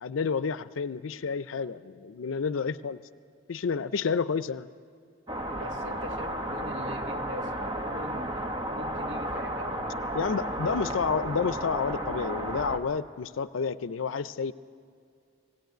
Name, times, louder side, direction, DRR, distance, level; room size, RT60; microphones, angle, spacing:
voice 1, 0.0-3.0 3.5-4.7 10.1-14.5, left 5 dB, 90° left, 14 dB, 0.5 m, -30 dB
sound 1, 5.3-12.8, right 1 dB, 25° right, 1.0 m, -33 dB
voice 2, 5.6-9.8, equal, 65° right, 5 dB, 1.4 m, -42 dB
19.0 x 17.0 x 9.2 m, 2.3 s
head